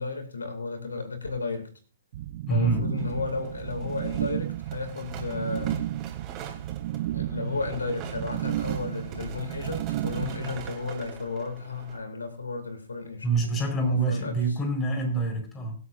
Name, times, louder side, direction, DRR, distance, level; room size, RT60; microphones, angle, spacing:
voice 1, 0.0-1.7 2.5-5.9 7.1-13.3 14.1-14.3, left 4 dB, 90° left, 7 dB, 2.4 m, -33 dB
sound 1, 2.1-10.7, right 14 dB, 50° right, 0.7 m, -33 dB
voice 2, 2.5-2.9 13.2-15.8, right 3 dB, 20° left, 3 dB, 4.5 m, -26 dB
sound 2, 3.0-12.0, right 8 dB, 30° right, 3.2 m, -44 dB
24.0 x 8.2 x 2.6 m, 0.38 s
hypercardioid pair, 130°, 0 cm